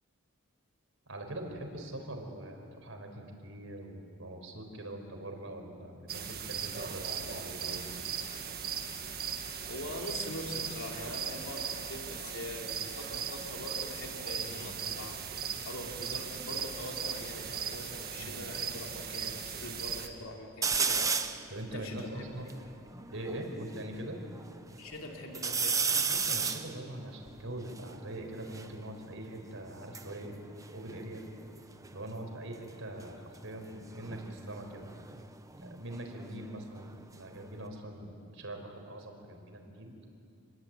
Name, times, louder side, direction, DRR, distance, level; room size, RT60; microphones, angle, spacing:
voice 1, 1.1-7.9 14.4-14.7 18.2-18.4 21.5-22.5 23.1-24.3 26.1-30.3 30.7-31.2 31.9-34.9 35.6-40.0, right 1 dB, 65° right, 3 dB, 5.0 m, -42 dB
sound 1, 6.1-20.1, right 7 dB, 45° right, 1.7 m, -38 dB
voice 2, 9.7-21.2 21.7-22.3 24.8-25.8, left 1 dB, 70° left, 1 dB, 3.2 m, -43 dB
sound 2, 20.6-21.5 22.0-22.1 22.3-23.8 24.4-24.9 25.3-28.7 29.7-31.6 31.8-32.3 33.9-36.5 36.9-37.7, right 5 dB, 15° right, 0.8 m, -34 dB
29.0 x 21.5 x 9.2 m, 2.5 s
head